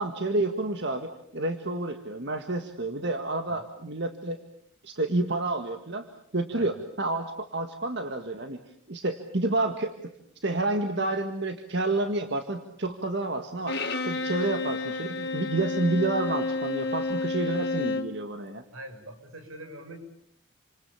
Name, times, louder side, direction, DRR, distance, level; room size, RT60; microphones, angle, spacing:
voice 1, 0.0-4.4 4.8-6.1 6.3-8.6 8.9-10.1 10.4-18.6, right 2 dB, 55° right, 6 dB, 1.9 m, -29 dB
Bowed string instrument, 13.7-18.2, left 3 dB, 50° left, 2.6 m, -30 dB
voice 2, 18.7-20.0, right 1 dB, 85° right, 5 dB, 7.2 m, -43 dB
29.5 x 27.0 x 7.3 m, 0.67 s
head